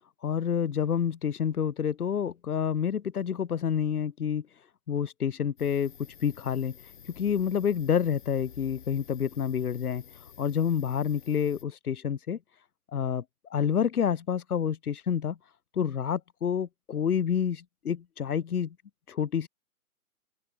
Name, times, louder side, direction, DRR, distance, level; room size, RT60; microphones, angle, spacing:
voice 1, 0.2-4.5 4.9-5.9 6.2-6.8 7.1-10.0 10.4-12.4 12.9-13.2 13.5-15.4 15.7-18.7 19.1-19.5, left 8 dB, 85° left, 1.1 m, -28 dB
sound 1, 5.6-11.6, left 8 dB, 35° left, 2.5 m, -51 dB
open air
hypercardioid pair, 175°, 43 cm